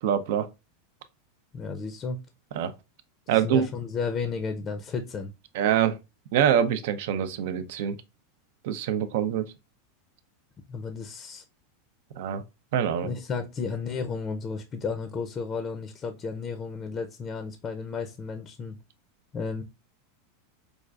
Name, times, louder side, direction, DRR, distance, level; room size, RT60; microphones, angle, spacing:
voice 1, 0.0-0.5 2.5-2.7 3.3-3.7 5.5-6.0 6.3-8.0 8.6-9.5 12.1-12.4 12.7-13.1, right 9 dB, 65° right, 0.5 m, -25 dB
voice 2, 1.5-2.2 3.3-5.3 10.7-11.4 13.0-18.8 19.3-19.6, left 5 dB, 25° left, 0.5 m, -33 dB
5.0 x 2.4 x 2.3 m
supercardioid pair, 135°, 0 cm